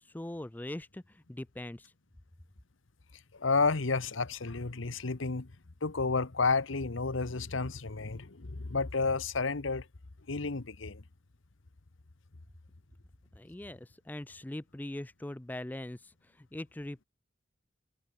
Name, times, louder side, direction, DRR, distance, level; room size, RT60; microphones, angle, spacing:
voice 1, 0.0-1.9 13.3-17.0, left 1 dB, 10° left, 0.3 m, -42 dB
voice 2, 3.3-5.5 5.8-9.9 10.3-11.0, left 4 dB, 75° left, 1.1 m, -31 dB
head